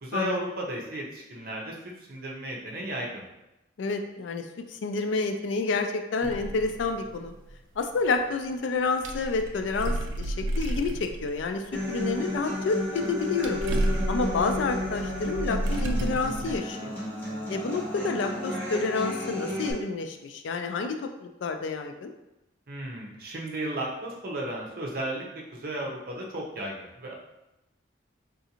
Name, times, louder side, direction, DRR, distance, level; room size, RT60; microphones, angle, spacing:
voice 1, 0.0-3.2 22.7-27.1, right 1 dB, 50° right, -2 dB, 0.6 m, -34 dB
voice 2, 3.8-7.3 7.8-13.6 14.1-17.0 17.5-22.1, left 3 dB, 75° left, 6 dB, 0.3 m, -29 dB
sound 1, 6.2-7.8 8.2-8.3 8.8-12.8 13.1-16.6, right 1 dB, 85° right, 0.4 m, -31 dB
Human voice / Acoustic guitar, 11.7-19.7, left 1 dB, 10° left, 0.7 m, -33 dB
3.7 x 2.5 x 2.8 m, 0.94 s
head